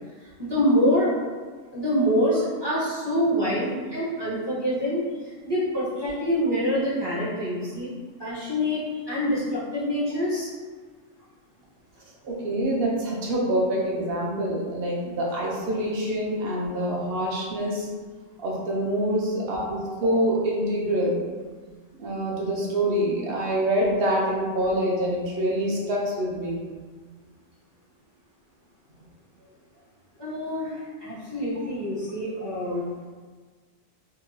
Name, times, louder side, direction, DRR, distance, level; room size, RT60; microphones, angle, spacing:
voice 1, 0.4-1.1 1.7-7.9 8.2-10.5 30.2-32.8, equal, 30° right, -10 dB, 0.5 m, -26 dB
voice 2, 12.2-17.9 18.4-21.2 22.0-26.6, right 1 dB, 60° right, -3 dB, 0.7 m, -26 dB
2.8 x 2.2 x 2.6 m, 1.5 s
omnidirectional pair, 1.3 m